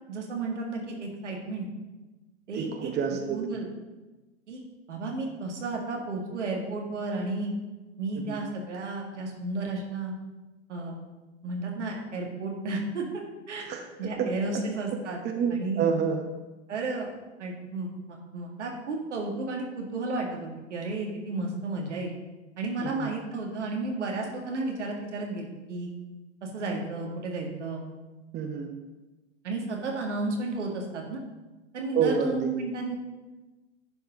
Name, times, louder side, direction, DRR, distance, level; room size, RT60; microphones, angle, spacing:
voice 1, 0.1-1.7 2.5-2.9 3.3-3.7 4.5-4.6 4.9-7.5 8.0-10.1 10.7-11.0 11.4-13.7 14.0-15.2 15.5-15.9 16.7-17.1 17.4-22.1 22.6-25.9 26.4-27.8 29.4-31.2 31.7-33.0, right 3 dB, 80° right, 1 dB, 2.0 m, -33 dB
voice 2, 2.5-3.4 8.3-8.4 13.6-14.3 15.2-16.2 22.8-23.1 28.3-28.7 31.9-32.5, right 7 dB, 30° right, 4 dB, 1.0 m, -28 dB
10.5 x 4.7 x 5.1 m, 1.1 s
hypercardioid pair, 100°, 35 cm